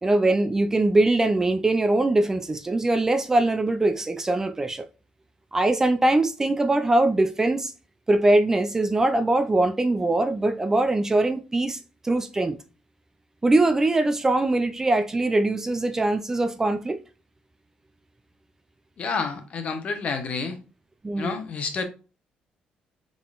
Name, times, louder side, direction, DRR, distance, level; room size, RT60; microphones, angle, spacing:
voice 1, 0.0-4.8 5.5-7.7 8.1-12.6 13.4-17.0 21.0-21.4, right 2 dB, 20° right, 0.4 m, -22 dB
voice 2, 19.0-20.6 21.2-21.8, left 4 dB, 50° left, 0.9 m, -29 dB
3.8 x 3.7 x 2.4 m
cardioid pair, 110°, 3 cm